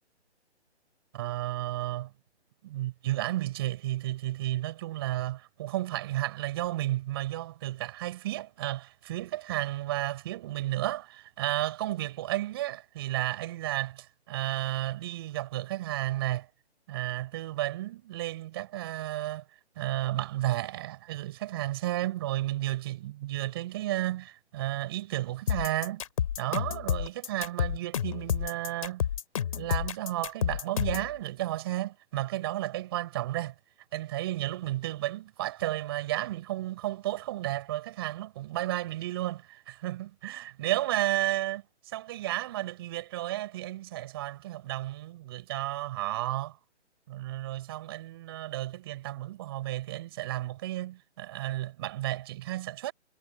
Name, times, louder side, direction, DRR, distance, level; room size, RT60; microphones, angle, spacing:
voice 1, 1.1-2.1 2.6-16.5 16.9-19.4 19.7-26.0 26.4-29.0 29.6-33.5 33.9-46.6 47.1-52.9, right 15 dB, 20° right, 6.5 m, -33 dB
sound 1, 25.5-31.1, left 9 dB, 30° left, 3.8 m, -30 dB
hypercardioid pair, 170°, 34 cm